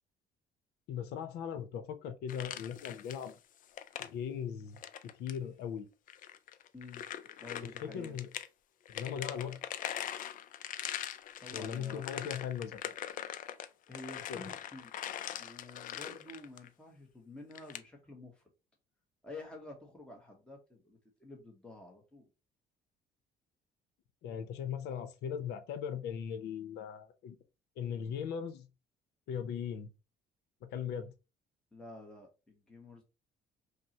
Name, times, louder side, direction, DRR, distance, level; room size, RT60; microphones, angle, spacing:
voice 1, 0.9-3.4 4.0-4.8 5.2-5.9 7.8-8.3 8.9-9.6 11.5-12.9 14.3-14.5 24.2-27.4 27.8-28.7 29.3-29.9 30.6-31.1, left 8 dB, 80° left, 0.7 m, -39 dB
sound 1, 2.3-3.3 3.6-4.1 4.8-5.4 6.1-8.5 8.9-16.7 17.5-17.8, left 10 dB, 55° left, 0.4 m, -42 dB
voice 2, 6.7-7.1 7.4-8.2 11.4-12.0 13.9-14.9 15.3-18.4 19.2-22.3 31.7-33.0, left 2 dB, 5° left, 0.9 m, -49 dB
5.2 x 2.1 x 2.8 m
cardioid pair, 110°, 17 cm